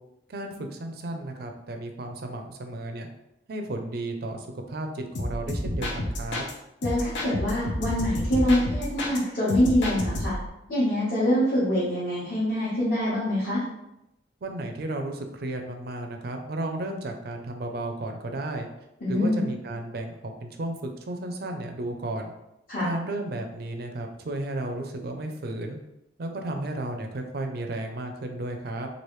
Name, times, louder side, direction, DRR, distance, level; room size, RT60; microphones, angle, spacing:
voice 1, 0.3-3.1 3.5-6.4 14.4-18.7 19.1-22.3 22.8-25.8 26.2-28.9, right 1 dB, 55° right, 4 dB, 0.4 m, -33 dB
sound 1, 5.1-6.5 6.8-9.2 9.5-10.5, left 1 dB, 75° left, 0.6 m, -30 dB
voice 2, 6.8-10.4 10.7-13.6 19.0-19.4 22.7-22.9, left 1 dB, 50° left, -11 dB, 1.0 m, -25 dB
3.2 x 2.5 x 3.1 m, 0.88 s
head